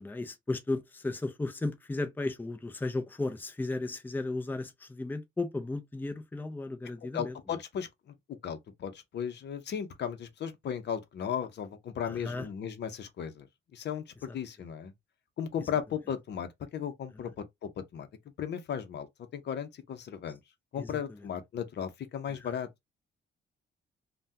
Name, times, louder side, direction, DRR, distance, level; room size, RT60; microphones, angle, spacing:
voice 1, 0.0-7.4 12.0-12.5 14.3-14.4 17.1-17.2 20.8-21.3 22.3-22.6, left 2 dB, 10° left, 0.6 m, -35 dB
voice 2, 7.1-7.9 8.3-13.5 13.7-14.9 15.4-18.1 18.4-19.1 19.3-20.4 20.7-22.7, left 8 dB, 60° left, 0.7 m, -36 dB
3.4 x 2.2 x 2.7 m
cardioid pair, 90°, 20 cm